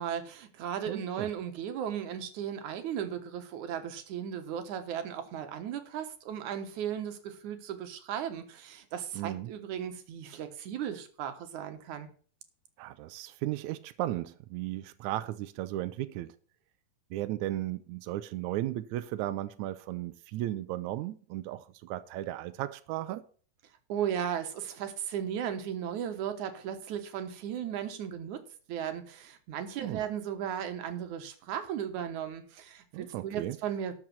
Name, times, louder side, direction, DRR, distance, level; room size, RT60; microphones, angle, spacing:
voice 1, 0.0-12.1 23.9-28.4 28.7-33.9, right 9 dB, 65° right, 8 dB, 2.5 m, -36 dB
voice 2, 0.9-1.3 9.1-9.5 12.8-16.3 17.1-23.2 29.8-30.0 32.9-33.6, right 14 dB, 80° right, 12 dB, 1.7 m, -35 dB
12.5 x 6.1 x 6.0 m, 0.43 s
omnidirectional pair, 4.1 m